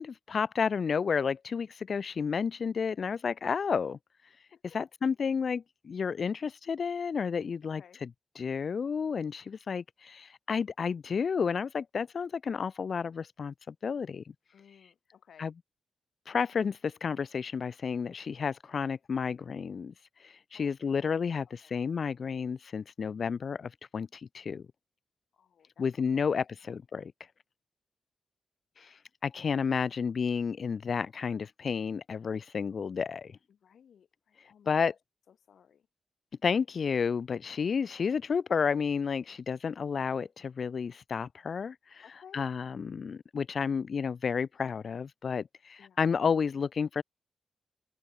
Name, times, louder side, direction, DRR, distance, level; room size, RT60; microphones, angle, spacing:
voice 1, 0.0-4.0 4.7-8.1 8.4-14.2 15.4-15.5 16.3-19.9 20.2-24.6 25.8-27.1 28.8-28.9 29.2-33.4 34.7-34.9 36.4-42.0 42.3-47.0, left 6 dB, 50° left, 0.4 m, -31 dB
voice 2, 14.5-15.5 20.5-21.2 21.6-21.7 25.3-26.3 26.6-26.8 33.5-34.9 35.3-35.9 42.0-42.5 45.8-46.0, left 8 dB, 90° left, 5.6 m, -58 dB
open air
wide cardioid pair, 180°, 0 cm